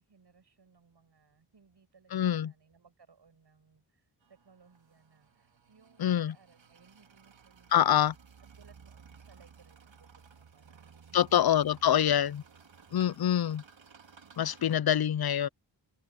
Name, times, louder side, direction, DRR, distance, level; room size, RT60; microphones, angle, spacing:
voice 1, 0.0-8.0 8.5-11.7 12.0-12.3 12.7-13.5 15.0-15.2, right 5 dB, 65° right, 6.5 m, -63 dB
voice 2, 2.1-2.5 6.0-6.3 7.7-8.1 11.1-12.4 12.9-13.6 14.4-15.5, left 10 dB, 55° left, 0.6 m, -25 dB
sound 1, 4.2-14.8, right 6 dB, 80° right, 2.9 m, -57 dB
wide cardioid pair, 75°, 45 cm